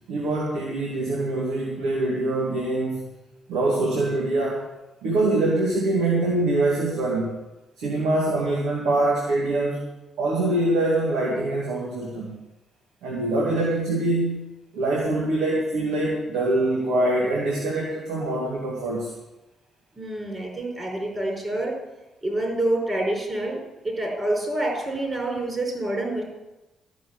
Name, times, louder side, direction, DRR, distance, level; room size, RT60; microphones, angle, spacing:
voice 1, 0.1-3.1 3.5-4.7 5.0-7.4 7.8-9.9 10.2-12.4 13.0-14.5 14.7-19.1, right 2 dB, 90° right, -2 dB, 2.6 m, -24 dB
voice 2, 20.0-21.7 22.2-26.2, right 1 dB, 25° right, 0 dB, 4.8 m, -27 dB
14.0 x 6.4 x 9.7 m, 1.0 s
cardioid pair, 85°, 0 cm